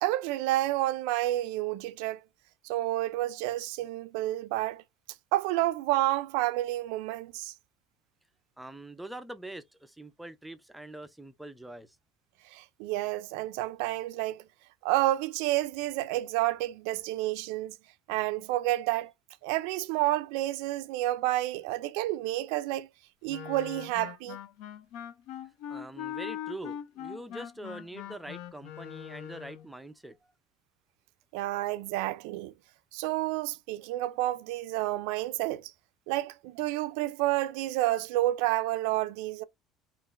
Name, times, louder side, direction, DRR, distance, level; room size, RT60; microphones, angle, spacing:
voice 1, 0.0-2.2 2.6-4.8 5.3-7.5 12.5-14.4 14.8-17.8 18.1-19.1 19.4-22.9 23.2-24.4 31.3-32.5 32.9-35.7 36.1-39.4, right 16 dB, 85° right, 0.3 m, -30 dB
voice 2, 8.6-12.0 25.7-30.3, right 1 dB, 5° right, 0.4 m, -44 dB
Wind instrument woodwind instrument, 23.3-29.7, left 10 dB, 65° left, 0.4 m, -41 dB
3.7 x 2.4 x 2.4 m
cardioid pair, 150°, 0 cm